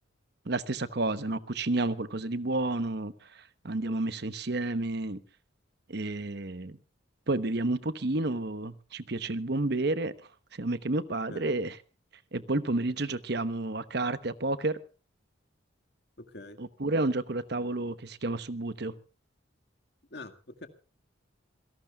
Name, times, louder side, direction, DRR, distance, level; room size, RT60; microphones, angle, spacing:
voice 1, 0.5-5.2 5.9-6.8 7.3-10.1 10.6-11.7 12.3-14.8 16.6-18.9, right 2 dB, 55° right, 1.0 m, -30 dB
voice 2, 16.2-16.6 20.1-20.7, left 2 dB, 55° left, 2.0 m, -44 dB
27.0 x 17.5 x 2.4 m
head